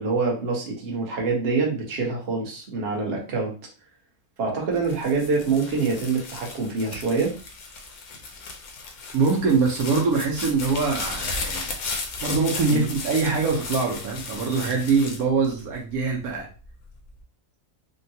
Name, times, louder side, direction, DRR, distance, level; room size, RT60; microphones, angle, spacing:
voice 1, 0.0-3.5 4.4-7.3 12.7-12.9, right 4 dB, 45° right, -1 dB, 1.0 m, -25 dB
sound 1, 4.8-16.1 16.6-17.2, left 4 dB, 75° left, 1.2 m, -35 dB
voice 2, 9.1-11.8 12.2-16.5, right 4 dB, 75° right, -1 dB, 1.2 m, -23 dB
3.6 x 2.2 x 2.7 m, 0.37 s
omnidirectional pair, 1.6 m